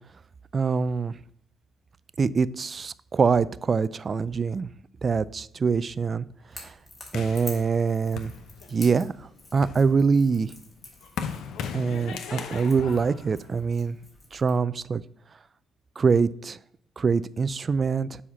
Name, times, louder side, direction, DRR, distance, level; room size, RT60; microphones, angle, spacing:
voice 1, 0.5-1.1 2.2-4.7 5.0-6.2 7.1-8.3 8.7-9.1 9.5-10.5 11.7-14.0 14.3-15.0 16.0-16.6 17.0-18.2, right 5 dB, 40° right, 18 dB, 0.3 m, -24 dB
Crackle / Crack, 6.5-14.6, left 2 dB, 25° left, 2.7 m, -48 dB
sound 1, 7.1-9.0 9.4-14.1, left 7 dB, 80° left, 0.7 m, -38 dB
7.3 x 4.2 x 5.8 m, 0.69 s
cardioid pair, 90°, 0 cm